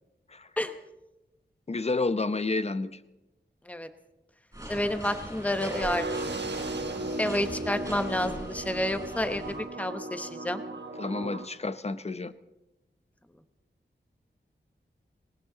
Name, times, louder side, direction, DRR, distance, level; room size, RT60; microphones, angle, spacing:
voice 1, 1.7-3.0 11.0-12.3, left 3 dB, 35° left, 12 dB, 0.7 m, -30 dB
sound 1, 4.5-9.6, equal, 15° right, 7.7 m, -40 dB
voice 2, 4.7-6.0 7.2-9.4 9.8-10.6, left 1 dB, 5° left, 9 dB, 0.9 m, -29 dB
sound 2, 5.5-11.5, right 2 dB, 65° right, 1.2 m, -36 dB
20.0 x 18.5 x 3.9 m, 1.0 s
wide cardioid pair, 90°, 19 cm